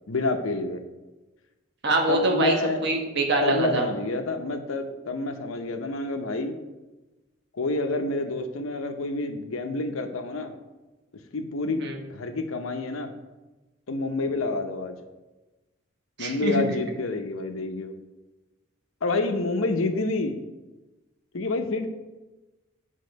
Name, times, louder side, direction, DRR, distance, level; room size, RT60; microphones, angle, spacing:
voice 1, 0.1-0.8 2.1-2.8 3.4-6.6 7.5-10.5 11.3-11.8 12.1-13.1 13.9-15.0 16.2-17.9 19.0-20.4 21.3-21.9, left 2 dB, 90° left, 7 dB, 0.7 m, -28 dB
voice 2, 1.8-2.6 2.8-3.8 11.8-12.0 16.2-16.6, right 2 dB, 55° right, 1 dB, 1.1 m, -24 dB
8.5 x 3.7 x 5.2 m, 1.1 s
head